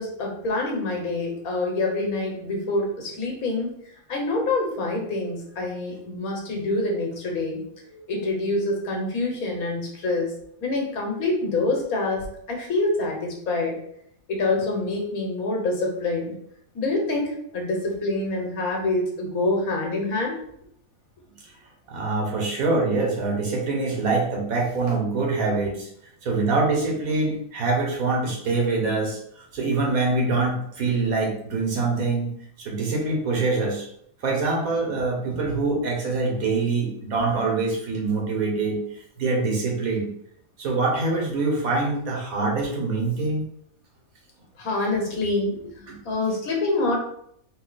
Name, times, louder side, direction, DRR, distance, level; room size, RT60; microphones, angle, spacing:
voice 1, 0.0-3.7 4.1-7.6 7.9-10.3 10.6-13.8 14.3-16.3 16.7-20.4 44.6-47.0, left 2 dB, 80° left, 0 dB, 1.5 m, -26 dB
voice 2, 21.9-25.9 26.2-29.2 29.5-32.3 32.6-33.9 34.2-38.8 39.2-40.1 40.6-43.4 45.9-46.0, right 3 dB, 80° right, 0 dB, 1.6 m, -24 dB
4.2 x 2.7 x 3.9 m, 0.70 s
omnidirectional pair, 1.5 m